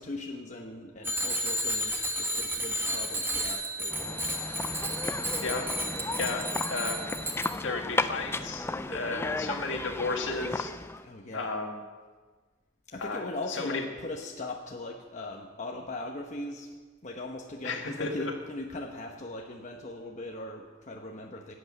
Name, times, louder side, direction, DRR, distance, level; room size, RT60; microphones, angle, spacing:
voice 1, 0.0-4.6 11.0-11.5 12.9-16.7 17.0-21.5, left 2 dB, 40° left, 0 dB, 1.0 m, -39 dB
Bicycle bell, 1.0-7.5, equal, 10° right, 1.2 m, -32 dB
sound 1, 3.9-11.1, left 2 dB, 10° left, 0.4 m, -34 dB
voice 2, 6.2-7.0 7.6-10.7 11.3-11.8 13.0-13.8 17.6-18.3, left 3 dB, 70° left, 2 dB, 1.8 m, -33 dB
11.0 x 8.2 x 8.4 m, 1.4 s
head